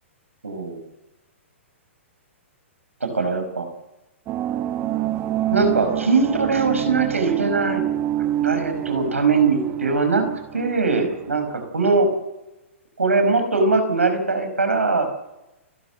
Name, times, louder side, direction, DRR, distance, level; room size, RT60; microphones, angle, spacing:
voice 1, 0.4-0.8 3.0-3.7 5.5-7.8 8.4-10.3 10.5-12.1 13.0-15.1, right 4 dB, 85° right, 7 dB, 5.3 m, -21 dB
sound 1, 4.3-11.6, right 12 dB, 30° right, 1.5 m, -27 dB
28.5 x 13.0 x 8.0 m, 0.98 s
figure-of-eight pair, 115°, 7 cm